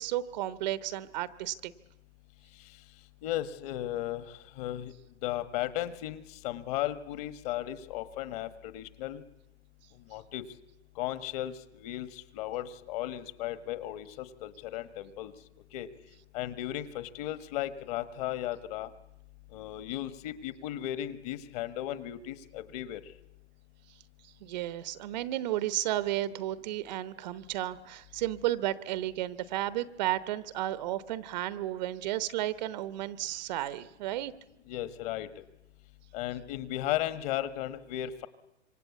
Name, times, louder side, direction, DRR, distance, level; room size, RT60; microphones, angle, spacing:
voice 1, 0.0-1.7 24.4-34.3, right 14 dB, 40° right, 16 dB, 1.0 m, -33 dB
voice 2, 3.2-4.9 5.2-9.2 10.1-10.4 10.9-15.3 15.7-15.9 16.3-18.9 19.5-23.0 34.7-35.3 36.1-38.3, left 13 dB, 35° left, 14 dB, 1.5 m, -35 dB
27.0 x 24.0 x 8.4 m, 0.90 s
hypercardioid pair, 145°, 35 cm